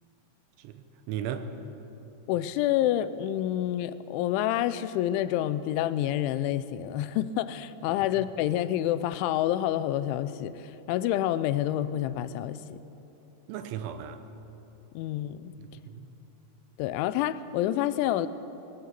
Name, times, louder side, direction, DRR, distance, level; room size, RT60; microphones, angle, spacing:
voice 1, 0.6-1.5 7.9-8.0 13.5-14.2 15.6-16.1, right 9 dB, 80° right, 3.3 m, -37 dB
voice 2, 2.3-12.8 15.0-15.5 16.8-18.3, left 12 dB, 85° left, 3.0 m, -28 dB
20.5 x 18.0 x 8.2 m
omnidirectional pair, 5.4 m